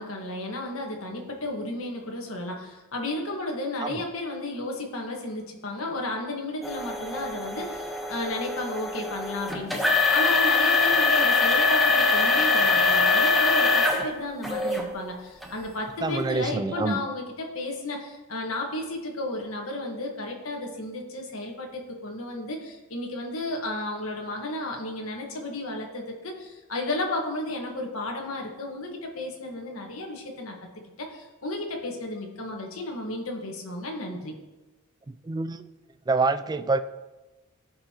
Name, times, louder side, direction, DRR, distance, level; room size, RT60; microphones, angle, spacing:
voice 1, 0.0-30.5 31.0-34.3, left 2 dB, 65° left, 1 dB, 1.5 m, -33 dB
sound 1, 6.6-14.0 14.4-14.8 15.4-15.5 16.2-16.3, left 4 dB, ahead, 1.1 m, -23 dB
voice 2, 16.0-17.0 35.1-35.7 36.1-36.8, right 3 dB, 20° right, 12 dB, 0.3 m, -26 dB
15.5 x 5.5 x 3.0 m, 1.1 s
head